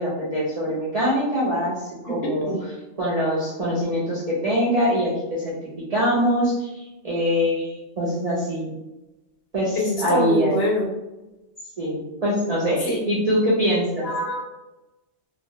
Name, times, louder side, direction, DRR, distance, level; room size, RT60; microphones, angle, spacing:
voice 1, 0.0-5.5 5.9-8.7 9.5-10.6 11.8-14.1, equal, 50° right, -8 dB, 0.4 m, -23 dB
voice 2, 9.8-10.9 12.9-13.0 14.0-14.4, left 1 dB, 65° left, -2 dB, 0.8 m, -24 dB
2.2 x 2.0 x 2.7 m, 0.99 s
omnidirectional pair, 1.2 m